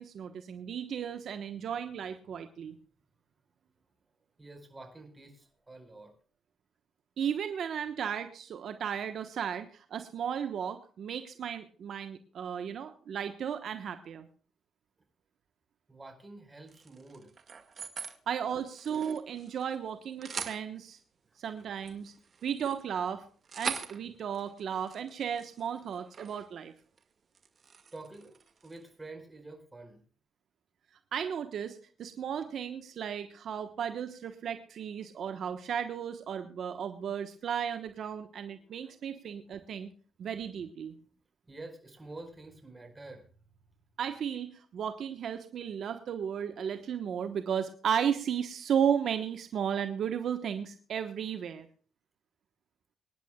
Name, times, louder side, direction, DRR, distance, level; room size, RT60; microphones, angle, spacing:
voice 1, 0.0-2.8 7.2-14.3 18.3-21.0 21.4-22.1 22.4-23.2 23.5-26.7 31.1-39.9 40.2-40.9 44.0-51.7, right 8 dB, 65° right, 8 dB, 1.1 m, -34 dB
voice 2, 4.4-6.1 15.9-17.3 18.1-18.2 21.3-21.4 22.3-22.5 27.8-30.0 38.4-39.5 41.5-43.4, right 2 dB, 15° right, 5 dB, 4.7 m, -49 dB
sound 1, 16.7-18.2 18.5-19.8 20.0-20.6 21.5-26.5 26.8-27.0 27.3-28.9, right 6 dB, 45° right, 1.9 m, -43 dB
24.5 x 10.5 x 2.3 m, 0.41 s
cardioid pair, 90°, 0 cm